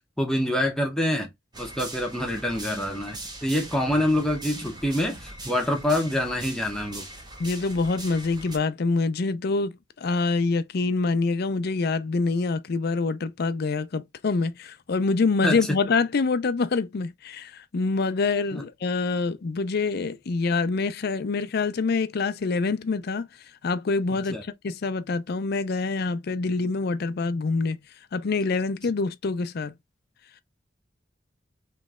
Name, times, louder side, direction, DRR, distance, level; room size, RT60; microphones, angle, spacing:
voice 1, 0.2-1.3 1.6-7.1 15.4-15.8 18.5-18.6 24.1-24.4, left 1 dB, 5° left, 0.8 m, -26 dB
sound 1, 1.5-8.6, right 2 dB, 20° right, 0.9 m, -41 dB
voice 2, 7.4-9.7 10.0-23.3 23.6-24.4 24.6-27.8 28.1-29.7, left 4 dB, 55° left, 0.5 m, -26 dB
3.1 x 3.1 x 3.6 m
head